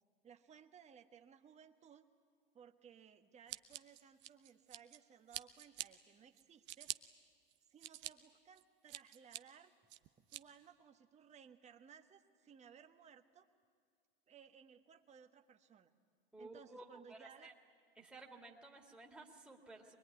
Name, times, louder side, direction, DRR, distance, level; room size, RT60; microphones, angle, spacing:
voice 1, 0.2-2.1 2.5-6.9 7.7-9.7 10.2-13.5 14.3-15.9 16.4-17.5, right 7 dB, 25° right, 6 dB, 1.4 m, -61 dB
Scissors, 3.5-5.0 5.3-5.9 6.4-7.0 7.5-8.1 8.6-9.4 9.9-10.4, right 15 dB, 40° right, 0.9 m, -46 dB
voice 2, 16.3-17.5 18.0-20.0, right 2 dB, 5° right, -1 dB, 2.3 m, -55 dB
24.0 x 21.0 x 9.8 m, 2.1 s
hypercardioid pair, 105°, 29 cm